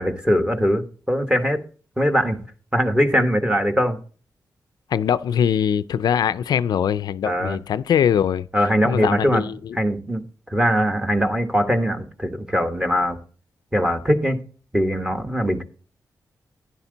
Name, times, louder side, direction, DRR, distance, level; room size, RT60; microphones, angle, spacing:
voice 1, 0.0-1.6 2.0-2.4 2.7-4.0 7.2-7.6 8.5-9.5 9.7-13.2 13.7-14.4 14.7-15.6, equal, 15° right, 1.3 m, -21 dB
voice 2, 4.9-8.5 8.8-9.8, left 8 dB, 80° left, 0.4 m, -22 dB
11.0 x 7.1 x 3.9 m
cardioid pair, 85°, 7 cm